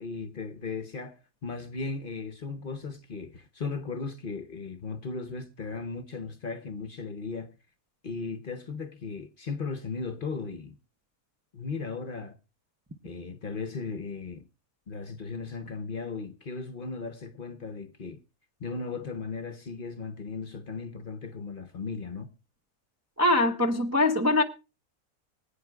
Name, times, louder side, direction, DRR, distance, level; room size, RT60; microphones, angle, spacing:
voice 1, 0.0-7.5 8.0-10.8 11.5-12.4 13.0-14.5 14.9-18.2 18.6-22.3, left 4 dB, 45° left, 0.9 m, -36 dB
voice 2, 23.2-24.4, left 1 dB, 15° right, 0.6 m, -23 dB
24.5 x 8.8 x 2.3 m
omnidirectional pair, 1.5 m